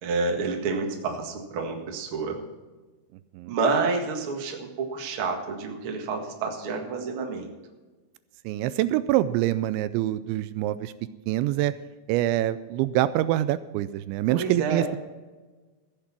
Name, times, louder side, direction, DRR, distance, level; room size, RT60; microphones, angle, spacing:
voice 1, 0.0-2.4 3.5-7.5 14.3-14.9, right 4 dB, 55° right, 2 dB, 1.5 m, -29 dB
voice 2, 8.5-10.9 11.3-11.7 12.1-15.0, right 14 dB, 85° right, 14 dB, 2.8 m, -25 dB
15.5 x 8.1 x 6.0 m, 1.3 s
omnidirectional pair, 5.3 m